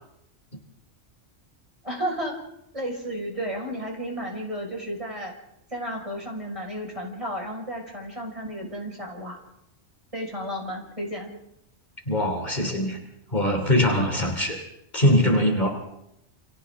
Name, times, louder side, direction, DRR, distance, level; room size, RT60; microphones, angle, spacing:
voice 1, 1.8-2.4 2.7-5.3 5.7-9.4 10.1-11.3, equal, 25° right, -1 dB, 5.9 m, -32 dB
voice 2, 12.1-13.0 13.3-14.6 14.9-15.7, left 1 dB, 40° left, 2 dB, 3.3 m, -22 dB
29.5 x 27.0 x 3.8 m, 0.82 s
omnidirectional pair, 1.2 m